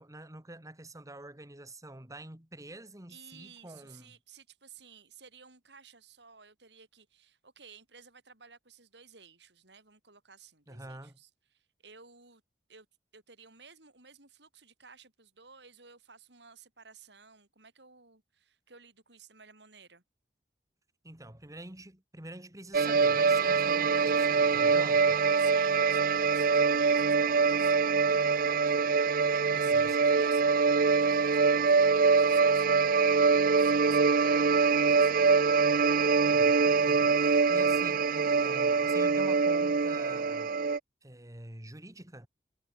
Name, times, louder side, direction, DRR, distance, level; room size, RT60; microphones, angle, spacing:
voice 1, 0.0-4.2 10.7-11.2 21.0-25.2 29.5-30.0 36.3-40.5 41.0-42.3, right 1 dB, 20° right, 2.2 m, -47 dB
voice 2, 3.1-12.4 12.7-12.9 13.1-20.0 25.4-35.4, right 5 dB, 70° right, 6.1 m, -55 dB
sound 1, 22.7-40.8, right 5 dB, 55° right, 0.6 m, -24 dB
head